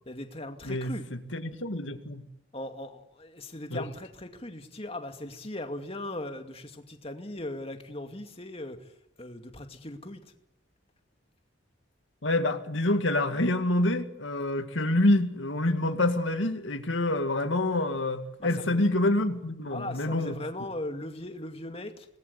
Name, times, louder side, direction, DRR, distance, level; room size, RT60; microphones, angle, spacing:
voice 1, 0.1-1.1 2.5-10.3 18.4-18.8 19.7-22.1, left 1 dB, 30° left, 2.3 m, -39 dB
voice 2, 0.6-2.2 3.7-3.8 12.2-20.4, left 1 dB, 70° left, 2.1 m, -27 dB
26.0 x 19.5 x 8.4 m
head